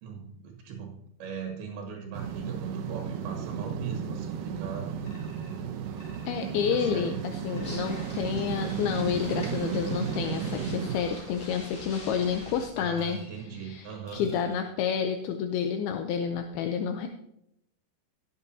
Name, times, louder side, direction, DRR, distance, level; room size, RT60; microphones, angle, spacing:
voice 1, 0.0-5.0 6.6-7.2 12.8-14.2, right 6 dB, 65° right, 2 dB, 2.9 m, -40 dB
sound 1, 2.1-11.0, right 7 dB, 85° right, 1.9 m, -34 dB
sound 2, 5.0-5.6 6.0-7.2 7.5-8.0 8.5-8.9 9.1-9.7 10.0-10.5 10.9-11.3 11.9-12.4 13.0-13.5 14.0-14.5, left 2 dB, 50° left, 4.4 m, -52 dB
voice 2, 6.3-13.2 13.6-17.1, left 7 dB, 80° left, 5 dB, 2.3 m, -29 dB
sound 3, 7.6-12.6, left 1 dB, 30° left, 1.7 m, -43 dB
18.0 x 8.2 x 2.8 m, 0.77 s
omnidirectional pair, 5.0 m